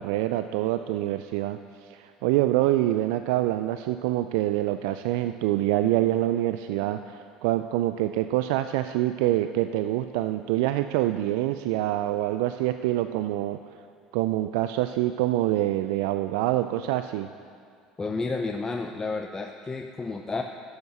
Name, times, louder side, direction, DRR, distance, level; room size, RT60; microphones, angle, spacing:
voice 1, 0.0-13.6 14.1-17.3, right 14 dB, 75° right, 10 dB, 0.3 m, -26 dB
voice 2, 18.0-20.4, left 3 dB, 20° left, 4 dB, 0.6 m, -31 dB
11.0 x 8.2 x 6.5 m, 2.2 s
hypercardioid pair, 75°, 2 cm